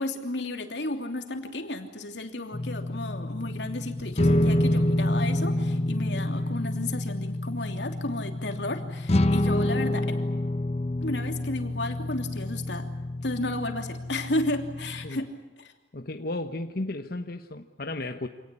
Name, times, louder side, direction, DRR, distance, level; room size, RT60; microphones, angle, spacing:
voice 1, 0.0-10.1 11.0-12.9 13.2-15.3 15.6-15.7, left 2 dB, 90° left, 5 dB, 3.0 m, -33 dB
sound 1, 2.5-15.1, left 1 dB, 35° left, 0.8 m, -28 dB
voice 2, 15.9-18.3, left 2 dB, 60° left, 6 dB, 1.1 m, -34 dB
27.0 x 19.0 x 9.9 m, 1.1 s
head